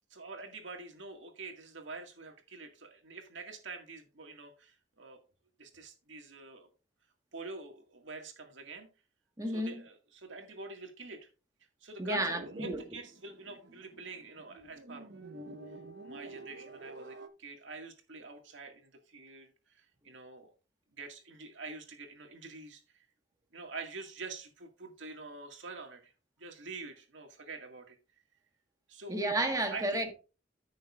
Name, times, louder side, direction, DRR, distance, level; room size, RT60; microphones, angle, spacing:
voice 1, 0.1-5.2 5.6-6.7 7.3-8.9 9.5-11.3 11.8-15.2 16.0-20.5 20.9-23.0 23.5-26.1 26.4-28.0 28.9-29.2 29.7-30.0, right 3 dB, 90° right, 1.9 m, -46 dB
voice 2, 9.4-9.7 12.0-12.8 29.1-30.2, right 1 dB, 20° right, 1.5 m, -32 dB
sound 1, 12.2-17.3, right 2 dB, 65° right, 1.1 m, -48 dB
14.0 x 6.4 x 2.5 m
head